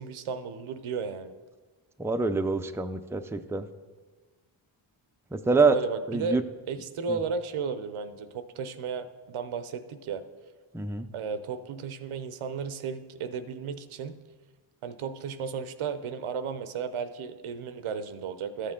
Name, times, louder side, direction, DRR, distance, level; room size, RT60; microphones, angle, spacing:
voice 1, 0.0-1.3 5.7-6.4 6.7-10.2 11.1-14.2 14.8-18.7, right 5 dB, 90° right, 10 dB, 0.7 m, -34 dB
voice 2, 2.0-3.7 5.3-5.8 6.1-6.4 7.1-7.2 10.7-11.1, right 4 dB, 5° right, 7 dB, 0.4 m, -25 dB
13.0 x 6.5 x 3.7 m, 1.3 s
cardioid pair, 65°, 48 cm